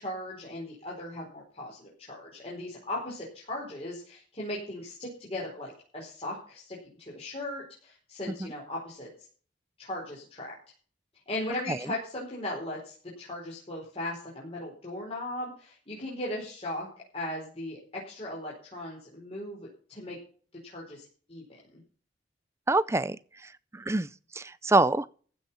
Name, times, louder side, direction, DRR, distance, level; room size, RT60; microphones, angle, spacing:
voice 1, 0.0-9.1 9.8-10.5 11.3-16.9 17.1-20.2 20.6-21.0 21.3-21.8, left 1 dB, 35° left, 4.7 m, -38 dB
voice 2, 22.7-23.2 23.7-24.1 24.3-25.1, right 2 dB, 15° right, 0.5 m, -25 dB
15.0 x 6.5 x 7.2 m
head